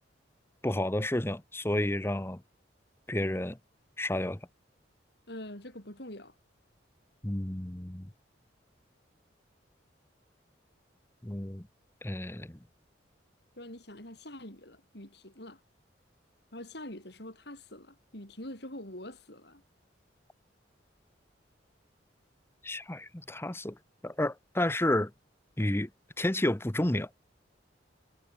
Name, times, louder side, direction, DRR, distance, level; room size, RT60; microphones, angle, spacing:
voice 1, 0.6-2.4 3.1-3.6 4.0-4.4 7.2-8.1 11.2-11.6 12.0-12.6 22.6-23.8 24.0-25.1 25.6-25.9 26.2-27.1, left 1 dB, 15° left, 0.9 m, -30 dB
voice 2, 5.3-6.3 13.6-15.6 16.5-19.6, left 1 dB, 60° left, 7.5 m, -45 dB
head